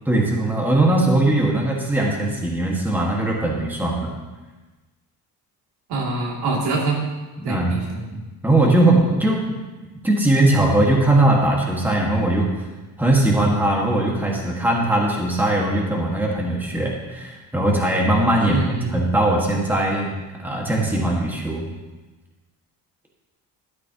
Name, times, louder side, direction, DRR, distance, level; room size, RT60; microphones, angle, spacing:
voice 1, 0.1-4.1 7.4-7.8 8.1-9.6 10.0-12.5 13.0-21.7, right 1 dB, 5° right, -2 dB, 1.7 m, -20 dB
voice 2, 5.9-7.0 7.4-8.0 18.4-19.0, right 3 dB, 85° right, -3 dB, 2.9 m, -25 dB
13.0 x 9.9 x 3.0 m, 1.2 s
cardioid pair, 130°, 38 cm